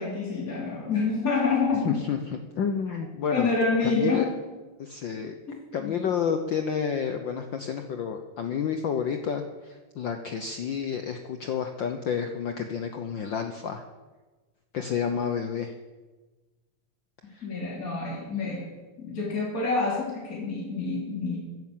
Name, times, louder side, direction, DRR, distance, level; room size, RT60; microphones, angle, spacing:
voice 1, 0.0-2.1 3.3-4.3 5.5-6.0 17.4-18.7 19.0-21.4, left 4 dB, 30° left, -4 dB, 3.2 m, -27 dB
voice 2, 1.8-3.5 3.8-4.2 4.8-5.3 5.7-13.8 14.7-15.7 17.3-17.5, left 7 dB, 85° left, 6 dB, 1.0 m, -30 dB
15.0 x 11.0 x 7.5 m, 1.3 s
omnidirectional pair, 3.3 m